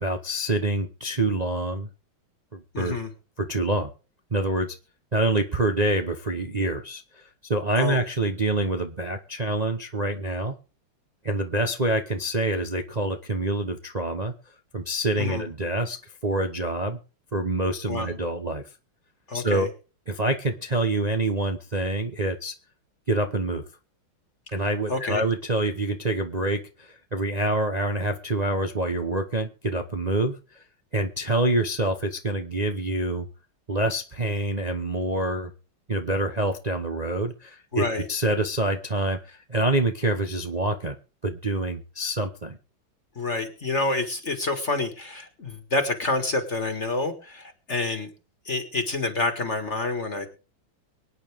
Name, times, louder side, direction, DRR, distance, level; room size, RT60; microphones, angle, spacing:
voice 1, 0.0-1.9 2.5-3.0 3.4-3.9 4.3-4.8 5.1-7.2 7.5-10.6 11.2-14.3 14.7-16.0 16.2-17.0 17.3-18.6 19.3-19.7 20.1-22.5 23.1-23.6 24.5-30.6 30.9-33.3 33.7-35.5 35.9-41.0 41.2-42.6, right 2 dB, 40° right, 5 dB, 0.5 m, -26 dB
voice 2, 2.7-3.1 7.8-8.0 15.2-15.5 17.9-18.1 19.3-19.7 24.9-25.2 37.7-38.1 43.2-48.1 48.5-50.3, left 3 dB, 35° left, 7 dB, 1.9 m, -28 dB
24.0 x 9.5 x 3.5 m, 0.35 s
omnidirectional pair, 2.2 m